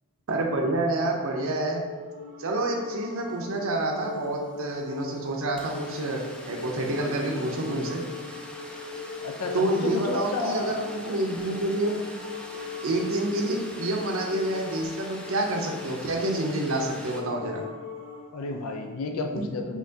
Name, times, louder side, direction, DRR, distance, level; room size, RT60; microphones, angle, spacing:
voice 1, 0.3-1.8 2.4-6.2 6.5-8.0 9.5-12.0 12.8-17.6, right 2 dB, 65° right, 0 dB, 0.6 m, -28 dB
sound 1, 0.7-18.3, left 4 dB, 65° left, 0.9 m, -39 dB
sound 2, 3.5-3.6 3.8-17.2, equal, 5° left, 0.3 m, -44 dB
voice 2, 9.2-10.9 18.3-19.8, left 3 dB, 85° left, 4 dB, 0.4 m, -31 dB
5.6 x 2.9 x 2.7 m, 1.3 s
head